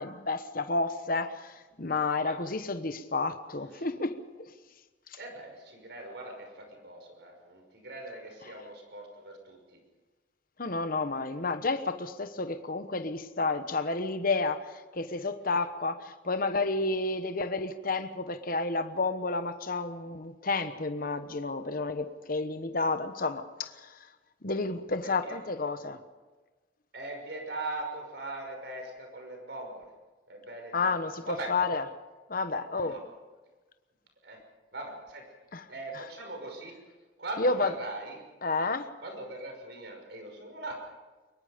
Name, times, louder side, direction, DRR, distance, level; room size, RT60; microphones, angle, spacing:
voice 1, 0.0-4.5 10.6-14.6 14.9-24.0 24.4-26.0 30.7-31.8 32.3-33.0 35.5-35.6 35.9-36.0 37.4-37.7 38.4-38.9, left 3 dB, 50° left, 1.1 m, -31 dB
voice 2, 5.2-9.8 25.0-25.4 26.9-29.9 30.3-30.9 31.2-31.6 32.7-33.0 34.2-34.4 34.7-35.3 35.7-36.8 37.2-38.2 39.0-40.8, right 2 dB, 60° right, 5.9 m, -41 dB
23.5 x 22.0 x 5.2 m
head